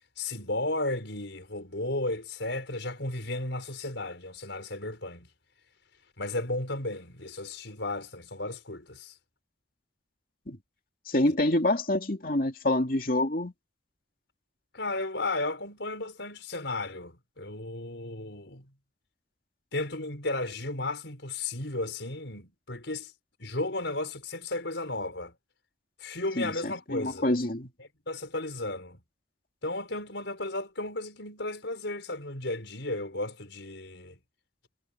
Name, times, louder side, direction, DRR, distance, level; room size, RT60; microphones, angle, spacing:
voice 1, 0.2-5.3 6.2-9.2 14.7-18.7 19.7-23.1 23.4-25.3 26.0-27.3 28.1-29.0 29.6-34.2, left 2 dB, 70° left, 5.0 m, -34 dB
voice 2, 11.1-13.5 26.4-27.7, left 1 dB, 50° left, 2.5 m, -27 dB
head